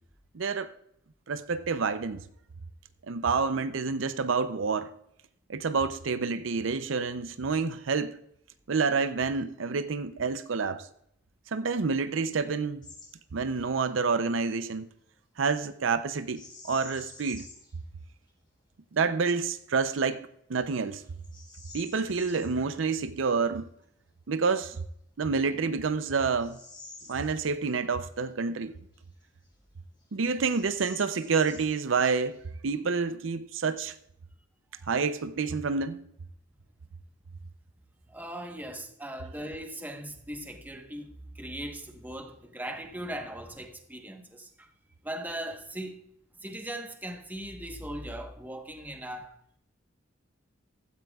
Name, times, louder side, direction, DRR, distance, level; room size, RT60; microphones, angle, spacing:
voice 1, 0.3-0.7 1.3-2.2 3.1-4.9 5.5-8.2 8.7-10.9 11.5-12.8 13.3-14.9 15.4-17.4 18.9-21.0 21.7-23.7 24.3-24.8 25.2-26.6 27.1-28.7 30.1-32.4 32.6-33.9 34.9-36.0, right 5 dB, 75° right, 0.6 m, -28 dB
Bird vocalization bird call bird song, 12.8-13.1 13.4-13.7 16.2-17.7 18.3-18.4 19.0-19.4 20.0-20.1 20.6-22.5 24.6-24.7 25.4-27.8 28.1-28.2 28.9-29.7 30.0-30.1 30.4-32.5, left 3 dB, 25° left, 4.3 m, -50 dB
voice 2, 38.1-44.7 45.0-46.0 46.4-49.3, right 1 dB, 10° right, 1.2 m, -39 dB
15.5 x 13.5 x 2.4 m
head